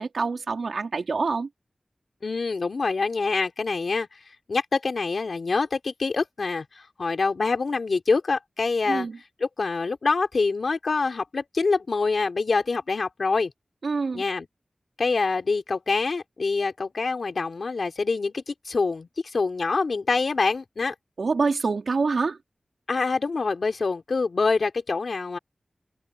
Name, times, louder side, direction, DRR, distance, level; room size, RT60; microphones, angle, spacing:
voice 1, 0.0-1.5 8.9-9.2 13.8-14.2 21.2-22.4, right 4 dB, 85° right, 4.0 m, -26 dB
voice 2, 2.2-4.1 4.5-9.1 9.4-13.5 14.1-14.4 15.0-20.9 22.9-25.4, left 4 dB, 75° left, 3.4 m, -25 dB
open air
wide cardioid pair, 80°, 0 cm